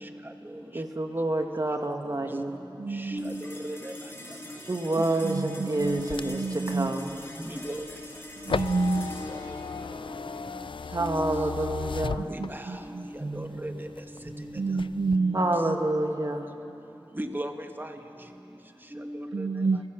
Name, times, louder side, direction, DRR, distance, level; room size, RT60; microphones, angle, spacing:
voice 1, 0.7-2.5 4.7-7.2 10.9-12.3 15.3-16.5, right 2 dB, 45° right, 4 dB, 1.8 m, -28 dB
voice 2, 2.8-3.4 5.0-6.9 8.4-9.1 12.4-13.1 14.6-15.8 19.3-19.8, right 3 dB, 85° right, 7 dB, 0.7 m, -29 dB
sound 1, 3.2-13.8, left 1 dB, 25° left, 3.7 m, -44 dB
voice 3, 5.3-5.7 7.4-7.8 11.0-11.4 12.3-12.4 13.2-13.7 14.4-14.6 17.2-17.5 17.8-17.9 19.0-19.1, right 1 dB, 25° right, 5 dB, 1.4 m, -34 dB
sound 2, 5.8-12.9 13.3-14.3 14.7-15.2, left 5 dB, 70° left, 0.4 m, -36 dB
29.0 x 15.0 x 6.4 m, 2.8 s
wide cardioid pair, 50°, 9 cm